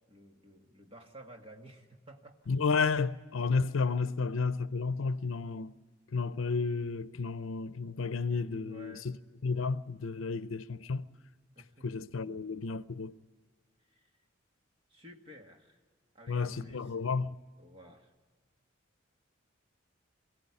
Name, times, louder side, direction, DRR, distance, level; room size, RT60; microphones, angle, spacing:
voice 1, 0.1-2.4 8.6-9.1 11.5-12.0 13.9-14.1 14.9-15.8 16.1-17.1 17.6-18.1, equal, 30° right, 2.1 m, -53 dB
voice 2, 2.5-5.7 6.1-9.2 9.4-11.1 11.8-13.1 16.3-17.4, left 4 dB, 85° left, 0.6 m, -32 dB
23.0 x 16.5 x 9.8 m
head